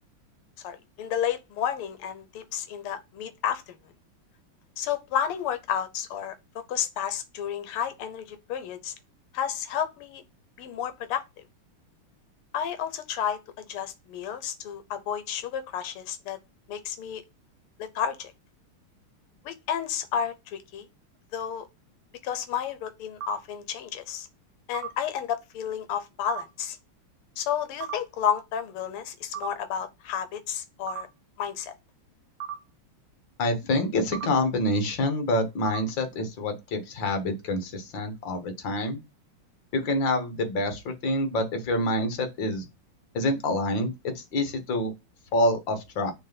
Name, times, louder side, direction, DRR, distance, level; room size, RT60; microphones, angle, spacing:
voice 1, 0.6-3.7 4.8-6.3 6.7-8.9 9.3-10.2 10.6-11.2 12.5-16.4 16.7-17.2 17.8-18.3 19.4-20.8 21.3-21.7 22.2-24.3 24.7-26.8 27.4-31.1 31.4-31.7, left 9 dB, 85° left, 1.7 m, -31 dB
sound 1, 23.2-23.4 24.7-24.9 26.3-26.4 27.8-28.0 29.3-29.5 30.9-31.0 32.4-32.6 34.1-34.3 35.7-35.8, right 9 dB, 85° right, 1.8 m, -33 dB
voice 2, 33.4-39.0 39.7-42.6 43.1-44.9 45.3-46.1, left 1 dB, 60° left, 2.0 m, -27 dB
6.4 x 3.3 x 5.8 m
omnidirectional pair, 2.4 m